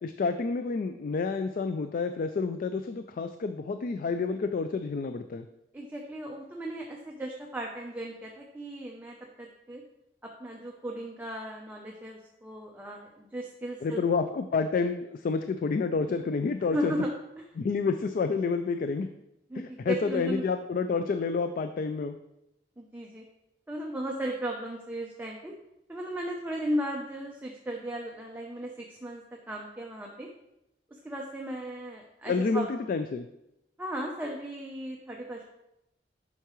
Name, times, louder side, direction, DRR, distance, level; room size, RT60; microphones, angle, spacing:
voice 1, 0.0-5.5 13.8-16.9 17.6-19.1 19.6-22.2 32.3-33.3, left 4 dB, 50° left, 8 dB, 0.3 m, -29 dB
voice 2, 5.7-9.8 10.2-14.0 16.6-17.4 19.5-20.4 22.8-23.2 23.7-25.5 25.9-30.3 30.9-32.7 33.8-35.5, right 1 dB, 10° right, -1 dB, 0.6 m, -36 dB
8.0 x 5.7 x 3.1 m, 0.87 s
head